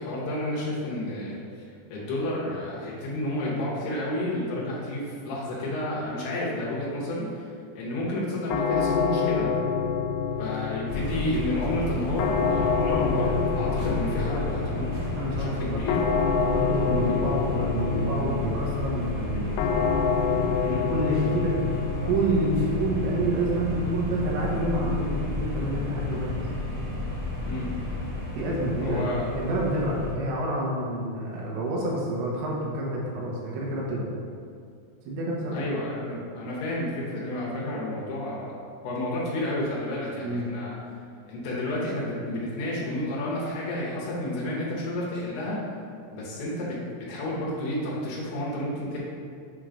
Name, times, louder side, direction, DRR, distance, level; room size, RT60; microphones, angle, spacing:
voice 1, 0.0-1.4 1.9-7.5 7.8-9.5 10.4-15.0 15.4-16.1 20.6-20.9 27.4-27.7 28.8-29.3 35.5-38.5 38.8-40.8 41.3-45.6 46.1-46.8 47.1-49.0, left 1 dB, 70° left, -6 dB, 2.8 m, -30 dB
sound 1, 8.5-27.4, left 6 dB, 90° left, 2.9 m, -29 dB
sound 2, 10.9-30.1, left 2 dB, 70° right, 1.5 m, -32 dB
voice 2, 15.2-15.8 16.4-19.5 20.9-21.6 22.0-26.4 28.4-29.0 29.4-34.1 35.1-35.7 37.5-37.7 40.2-40.5, right 1 dB, 85° right, -4 dB, 3.4 m, -28 dB
7.6 x 3.1 x 5.0 m, 2.2 s
omnidirectional pair, 5.2 m